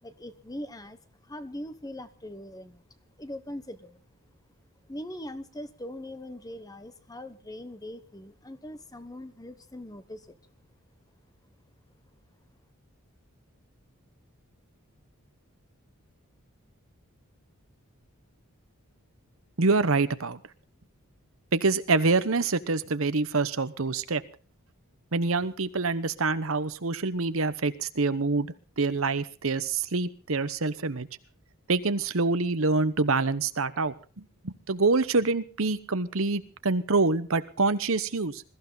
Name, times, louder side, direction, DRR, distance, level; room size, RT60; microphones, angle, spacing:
voice 1, 0.0-2.8 3.2-4.0 4.9-10.4, left 1 dB, 15° left, 12 dB, 1.1 m, -41 dB
voice 2, 19.6-20.4 21.5-24.2 25.1-28.5 28.8-31.1 31.7-38.4, right 3 dB, 65° right, 13 dB, 1.0 m, -26 dB
21.5 x 14.5 x 4.0 m, 0.36 s
head